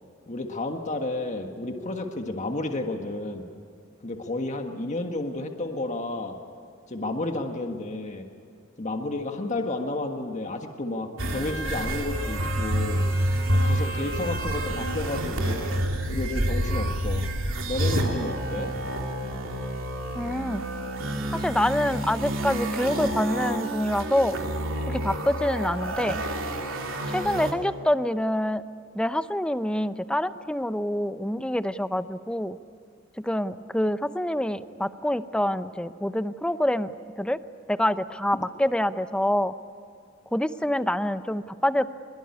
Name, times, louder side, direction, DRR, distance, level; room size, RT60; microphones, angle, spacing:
voice 1, 0.3-3.5 4.0-6.4 6.9-8.3 8.8-13.0 13.5-17.2 17.6-18.7, left 2 dB, 35° left, 4 dB, 1.6 m, -31 dB
sound 1, 11.2-27.5, right 1 dB, 75° right, 3.2 m, -28 dB
voice 2, 20.1-20.6 21.3-24.4 24.9-26.2 27.1-28.6 28.9-32.6 33.2-37.4 37.7-39.5 40.3-41.9, left 1 dB, 5° left, 12 dB, 0.6 m, -26 dB
22.5 x 22.5 x 9.8 m, 2.2 s
head